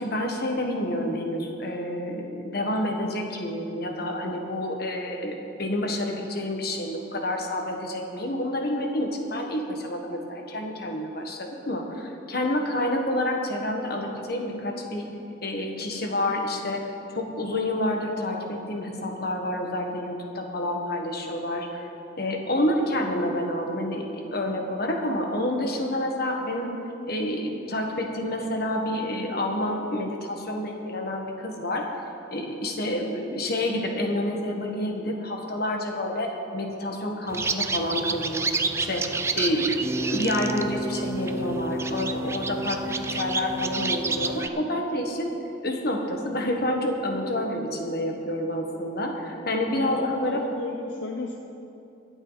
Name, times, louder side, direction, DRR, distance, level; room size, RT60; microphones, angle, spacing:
voice 1, 0.0-15.1 15.4-16.8 17.1-21.9 22.2-26.7 27.1-32.0 32.3-38.5 38.8-39.0 39.3-45.3 45.6-50.4, left 1 dB, 55° left, 2 dB, 1.5 m, -28 dB
sound 1, 37.3-44.5, right 3 dB, 15° right, 0.3 m, -29 dB
voice 2, 49.9-51.4, left 3 dB, 70° left, 2 dB, 0.7 m, -34 dB
23.0 x 8.0 x 4.1 m, 2.8 s
head